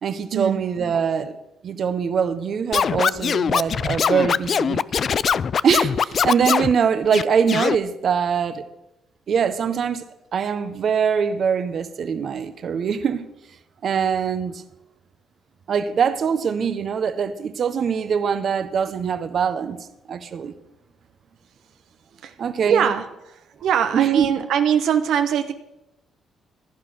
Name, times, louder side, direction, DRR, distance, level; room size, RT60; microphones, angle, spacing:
voice 1, 0.0-1.4 1.6-4.8 5.6-8.6 9.3-10.0 10.3-13.3 13.8-14.6 15.7-20.5 22.4-22.9 23.9-24.3, right 7 dB, 55° right, 1.2 m, -23 dB
Scratching (performance technique), 2.7-6.7 7.1-7.8, left 7 dB, 50° left, 0.4 m, -21 dB
voice 2, 22.7-23.0 23.6-25.5, right 8 dB, 80° right, 1.1 m, -21 dB
16.0 x 11.0 x 6.3 m
cardioid pair, 90°, 0 cm